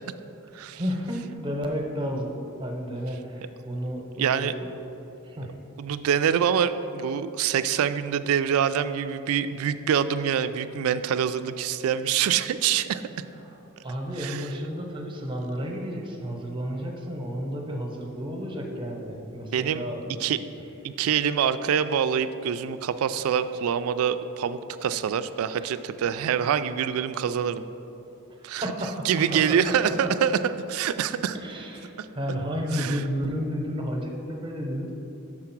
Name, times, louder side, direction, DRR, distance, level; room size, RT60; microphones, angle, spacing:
voice 1, 0.7-2.3 2.6-4.7 5.2-5.5 13.4-13.6 13.8-20.2 20.9-21.0 25.6-25.8 28.6-30.1 31.3-34.9, equal, 25° right, 1 dB, 0.8 m, -32 dB
voice 2, 4.2-4.5 5.8-13.0 14.2-14.4 19.5-19.8 20.2-20.4 20.8-27.6 28.4-28.6 29.1-30.4 30.7-31.4 32.7-33.0, right 8 dB, 70° right, 12 dB, 0.3 m, -25 dB
6.1 x 4.8 x 5.9 m, 3.0 s
head